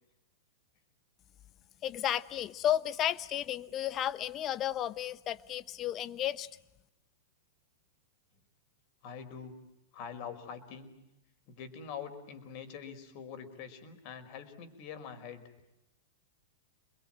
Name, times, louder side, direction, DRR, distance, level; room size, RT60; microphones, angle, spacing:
voice 1, 1.8-6.5, left 11 dB, 25° left, 16 dB, 1.1 m, -33 dB
voice 2, 9.0-9.5 9.9-10.9 11.5-15.5, left 7 dB, 45° left, 8 dB, 4.9 m, -44 dB
28.0 x 22.0 x 8.9 m, 0.92 s
supercardioid pair, 150°, 0 cm